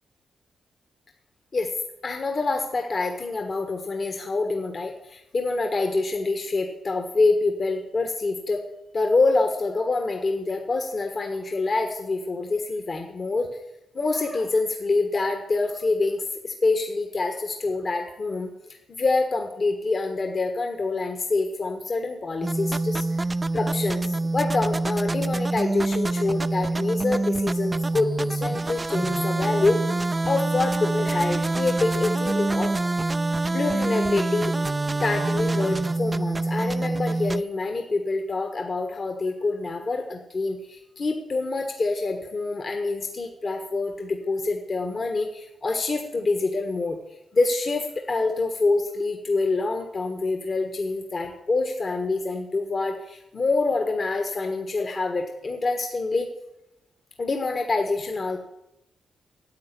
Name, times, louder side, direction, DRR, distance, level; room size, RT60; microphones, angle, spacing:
voice 1, 2.0-8.6 8.9-13.5 13.9-23.0 23.5-24.0 24.3-29.8 30.2-32.7 33.5-34.5 35.0-47.0 47.3-56.3 57.2-58.4, left 3 dB, 40° left, 4 dB, 1.5 m, -26 dB
sound 1, 22.4-37.4, right 2 dB, 20° right, 0.4 m, -26 dB
10.5 x 8.2 x 9.8 m, 0.89 s
cardioid pair, 105°, 0 cm